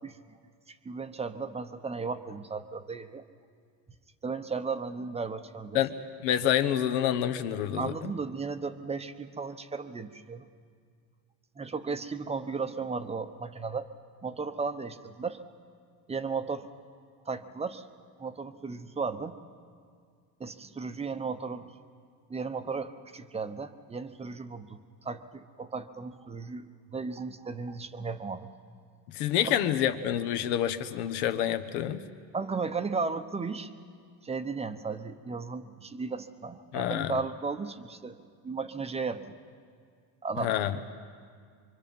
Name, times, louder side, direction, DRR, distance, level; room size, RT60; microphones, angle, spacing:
voice 1, 0.7-3.2 4.2-5.8 7.8-10.5 11.6-13.9 14.2-15.4 16.1-16.7 17.3-17.9 18.2-19.4 20.4-21.7 22.3-28.5 29.4-29.5 32.3-33.7 34.2-38.2 38.4-39.4 40.2-40.5, right 4 dB, 15° right, 9 dB, 0.7 m, -35 dB
voice 2, 6.2-7.9 29.1-32.0 36.7-37.1 40.4-40.8, left 10 dB, 80° left, 9 dB, 1.2 m, -27 dB
24.5 x 24.0 x 5.4 m, 2.1 s
supercardioid pair, 125°, 44 cm